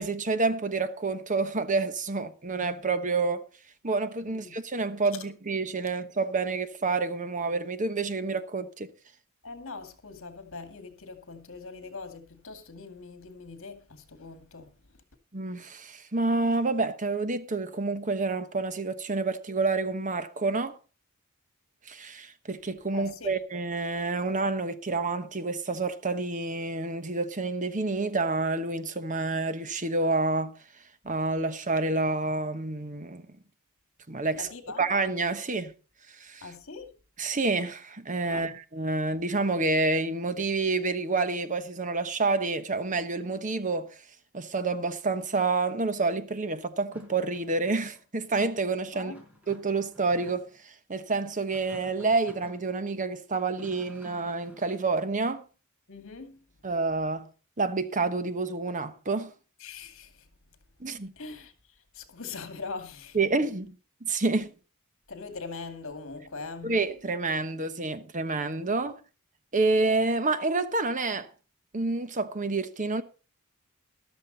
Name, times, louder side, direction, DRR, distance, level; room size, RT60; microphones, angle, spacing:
voice 1, 0.0-3.4 3.8-8.9 15.3-20.8 21.8-30.5 31.0-33.2 34.1-34.5 34.8-35.7 36.1-36.5 37.2-44.0 44.3-49.1 49.5-55.4 56.6-57.3 57.6-59.3 60.8-61.1 63.1-63.7 64.0-64.5 66.6-69.0 69.5-71.3 71.7-73.0, right 3 dB, 35° right, 1.1 m, -28 dB
voice 2, 9.4-14.7 22.9-23.4 34.3-34.8 36.4-36.9 38.3-38.5 48.9-49.2 55.9-56.4 59.6-60.1 61.2-61.5 61.9-63.2 65.1-66.8 68.8-68.9, left 4 dB, 65° left, 2.2 m, -41 dB
sound 1, 46.9-48.0 49.1-50.6 51.3-52.7 53.3-54.9, left 1 dB, 5° right, 4.7 m, -52 dB
13.5 x 12.5 x 4.0 m
head